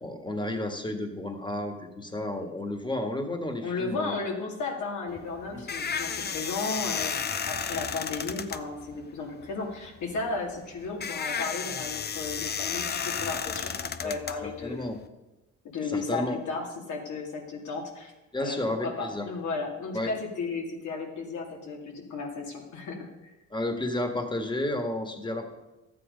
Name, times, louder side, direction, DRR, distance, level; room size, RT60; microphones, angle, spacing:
voice 1, 0.0-4.2 5.5-5.6 14.0-14.1 14.4-15.0 15.8-16.4 18.3-19.3 19.9-20.1 23.5-25.5, left 1 dB, 15° left, 5 dB, 1.8 m, -32 dB
voice 2, 3.6-14.8 15.6-23.3, left 3 dB, 75° left, 1 dB, 2.5 m, -34 dB
sound 1, 5.1-15.0, left 6 dB, 35° left, 0.6 m, -33 dB
12.5 x 8.7 x 5.3 m, 1.1 s
cardioid pair, 90°, 30 cm